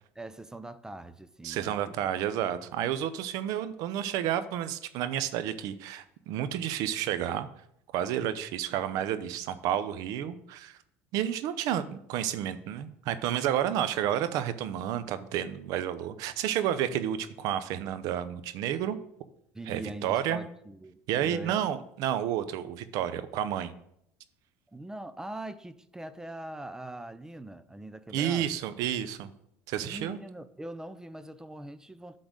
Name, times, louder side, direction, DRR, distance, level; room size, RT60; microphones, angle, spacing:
voice 1, 0.2-1.9 2.5-2.6 19.5-21.7 24.7-28.6 29.9-32.2, right 1 dB, 10° right, 0.5 m, -42 dB
voice 2, 1.4-7.5 7.9-10.8 11.1-19.0 19.7-20.4 21.1-23.7 28.1-29.3 29.7-30.2, right 10 dB, 70° right, 0.7 m, -31 dB
10.0 x 3.9 x 6.3 m
supercardioid pair, 105°, 6 cm